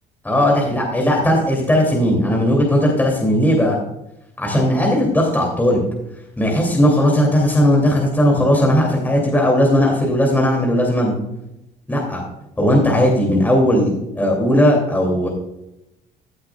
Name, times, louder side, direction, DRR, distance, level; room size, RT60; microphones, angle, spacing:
voice 1, 0.2-3.8 4.4-5.8 6.4-11.1 11.9-12.2 12.6-15.3, equal, 10° left, -1 dB, 2.9 m, -17 dB
15.5 x 7.6 x 2.4 m, 0.86 s
cardioid pair, 110°, 17 cm